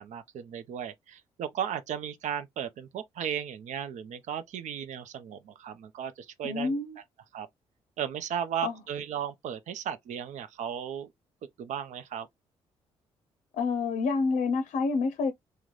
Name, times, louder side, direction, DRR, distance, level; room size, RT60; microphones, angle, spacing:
voice 1, 0.0-6.7 7.3-7.5 8.0-11.1 11.6-12.3, right 9 dB, 65° right, 0.6 m, -35 dB
voice 2, 6.4-7.0 8.6-8.7 13.5-15.3, left 4 dB, 60° left, 0.6 m, -28 dB
3.6 x 2.2 x 3.1 m
hypercardioid pair, 50°, 13 cm